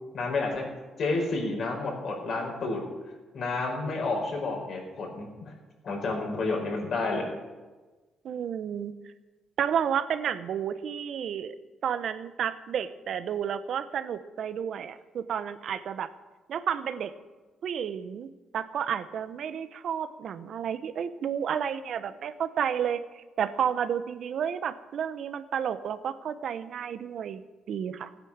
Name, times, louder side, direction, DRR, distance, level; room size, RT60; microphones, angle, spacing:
voice 1, 0.1-0.7 1.0-2.8 3.3-5.5 5.8-7.3, left 3 dB, 55° left, 0 dB, 4.9 m, -30 dB
voice 2, 8.2-8.9 9.6-11.5 11.8-16.1 16.5-17.1 17.6-27.4 27.7-28.1, right 8 dB, 65° right, 12 dB, 0.9 m, -31 dB
17.0 x 9.2 x 7.3 m, 1.2 s
cardioid pair, 90°, 0 cm